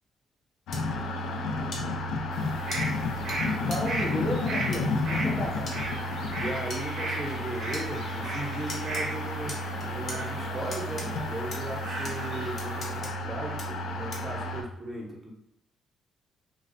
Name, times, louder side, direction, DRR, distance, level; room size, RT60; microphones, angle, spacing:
sound 1, 0.7-14.6, left 2 dB, 85° left, 0.3 m, -32 dB
sound 2, 0.7-0.8 1.7-1.8 2.7-2.8 3.3-3.4 3.7-3.8 4.7-4.8 5.7-5.8 6.7-6.8 7.7-7.8 8.7-9.0 9.5-10.2 10.7-11.1 11.5-11.6 12.0-12.1 12.6-13.1 13.6-13.7 14.1-14.3, left 2 dB, 50° left, 0.7 m, -38 dB
sound 3, 2.3-13.0, right 2 dB, 65° right, 0.6 m, -37 dB
voice 1, 3.7-5.7, left 1 dB, 15° left, -3 dB, 0.4 m, -33 dB
voice 2, 6.3-15.3, right 1 dB, 15° right, -1 dB, 0.7 m, -37 dB
2.4 x 2.0 x 2.5 m, 0.79 s
cardioid pair, 90°, 0 cm